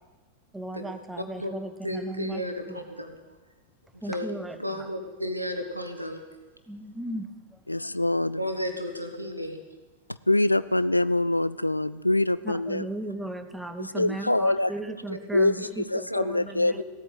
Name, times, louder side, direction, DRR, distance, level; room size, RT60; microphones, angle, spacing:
voice 1, 0.5-2.8 4.0-4.9 6.7-7.6 12.4-16.8, right 1 dB, 5° right, 8 dB, 1.1 m, -36 dB
voice 2, 1.8-3.1 4.1-4.2 4.6-6.2 8.4-9.6 15.1-15.7 16.1-16.3 16.8-16.9, left 1 dB, 90° right, 6 dB, 1.5 m, -33 dB
voice 3, 7.7-8.4 10.1-12.9 13.8-14.7 15.3-16.8, left 1 dB, 85° left, 18 dB, 0.4 m, -25 dB
16.0 x 8.9 x 8.3 m, 1.3 s
figure-of-eight pair, 90°, 0 cm